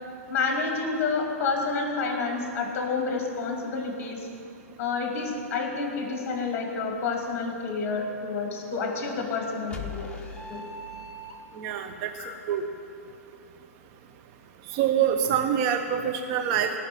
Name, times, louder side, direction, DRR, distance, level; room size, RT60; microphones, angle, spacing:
voice 1, 0.3-4.3 4.8-10.1 10.5-10.6 12.2-12.3, left 4 dB, 30° left, 2 dB, 2.6 m, -29 dB
sound 1, 9.7-11.8, left 3 dB, 15° left, 1.3 m, -39 dB
voice 2, 11.6-12.1 12.5-12.6 14.7-16.7, right 9 dB, 35° right, 5 dB, 0.8 m, -25 dB
17.5 x 6.3 x 9.2 m, 2.5 s
figure-of-eight pair, 115°, 8 cm